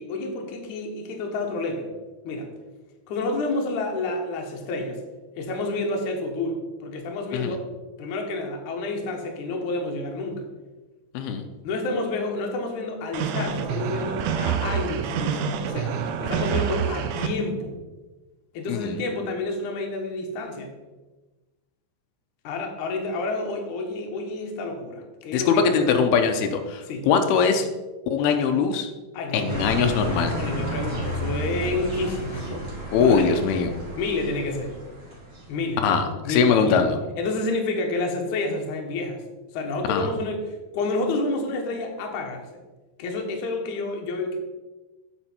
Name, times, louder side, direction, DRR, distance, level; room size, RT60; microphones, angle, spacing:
voice 1, 0.0-1.9 2.2-2.5 3.1-5.0 5.4-7.6 8.0-10.5 11.6-17.7 18.5-20.7 22.4-26.0 26.8-27.1 29.1-30.0 30.4-32.7 33.0-33.2 34.0-34.7 35.5-35.8 36.2-36.8 37.2-39.2 39.5-42.5 43.0-44.4, left 2 dB, 65° left, 2 dB, 2.3 m, -29 dB
sound 1, 13.1-17.3, right 7 dB, 85° right, 1.7 m, -27 dB
voice 2, 18.7-19.0 25.3-27.7 28.1-28.9 29.3-30.3 32.9-33.7 35.8-37.0 39.9-40.1, left 6 dB, 85° left, 6 dB, 2.7 m, -21 dB
sound 2, 29.5-35.7, right 1 dB, 20° right, 2.5 m, -32 dB
8.9 x 6.2 x 4.4 m, 1.2 s
omnidirectional pair, 4.4 m